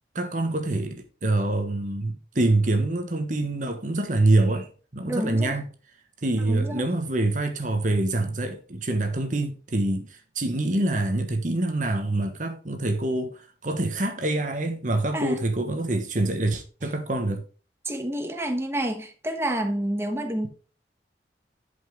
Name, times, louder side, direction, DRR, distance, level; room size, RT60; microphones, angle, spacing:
voice 1, 0.1-5.7 6.2-17.4, right 2 dB, 45° right, 1.2 m, -25 dB
voice 2, 5.1-5.6 6.4-6.9 15.1-15.4 17.8-20.5, right 1 dB, 15° right, 1.3 m, -29 dB
11.0 x 5.4 x 3.7 m
head